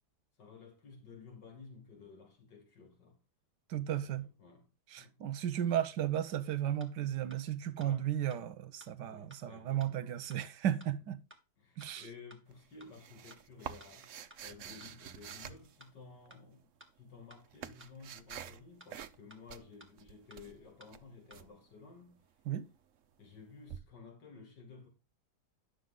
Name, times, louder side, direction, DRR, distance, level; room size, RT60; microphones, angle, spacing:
voice 1, 0.4-3.2 4.0-4.1 4.4-4.7 5.0-5.2 5.7-5.8 7.8-8.1 9.0-10.1 11.6-14.1 14.4-16.7 16.9-22.2 23.2-24.9, left 4 dB, 85° left, 2.9 m, -54 dB
voice 2, 3.7-4.3 4.9-11.2 11.8-12.1 22.5-22.7, right 11 dB, 85° right, 1.5 m, -34 dB
sound 1, 6.3-6.4 6.8-6.9 7.3-7.4 7.8-7.9 8.3-8.4 8.8-8.9 9.3-9.4 9.8-9.9 10.3-10.4 10.8-10.9 11.3-11.4 11.8-11.9 12.3-12.4 12.8-12.9 13.3-13.4 13.8-13.9 14.3-14.4 14.8-14.9 15.3-15.4 15.8-15.9 16.3-16.4 16.8-16.9 17.3-17.4 17.8-17.9 18.3-18.4 18.8-18.9 19.3-19.4 19.8-19.9 20.3-20.4 20.8-20.9 21.3-21.4, right 1 dB, 5° right, 1.6 m, -57 dB
sound 2, 12.5-16.3 17.1-18.6 18.9-19.2 19.5-21.5 23.7-23.8, right 9 dB, 55° right, 0.9 m, -48 dB
11.5 x 6.9 x 3.8 m
omnidirectional pair, 1.8 m